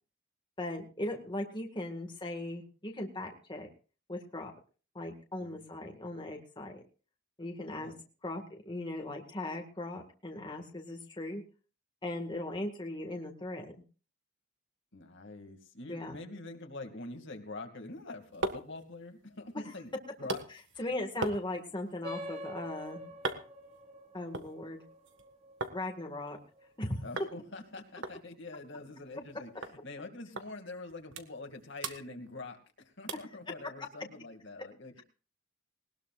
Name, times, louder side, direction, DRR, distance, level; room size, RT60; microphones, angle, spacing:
voice 1, 0.6-3.7 4.1-4.5 4.9-6.8 7.4-7.9 8.2-11.4 12.0-13.7 15.9-16.2 20.8-23.1 24.1-24.8 25.7-26.4 26.8-27.0, left 1 dB, 20° left, 2 dB, 1.9 m, -38 dB
voice 2, 7.6-8.0 14.9-19.9 20.2-20.4 20.8-20.9 27.0-35.0, left 2 dB, 60° left, 4 dB, 2.4 m, -45 dB
sound 1, 17.9-25.8 26.1-26.8 27.2-27.4 27.6-27.7 28.0-29.3 29.6-29.8 30.4-30.5 30.9-31.5 31.8-32.7 33.1-33.4 33.9-34.0, right 2 dB, 60° right, 1.7 m, -41 dB
sound 2, 22.0-27.0, equal, 30° right, 4.1 m, -46 dB
20.5 x 19.5 x 2.5 m, 0.37 s
head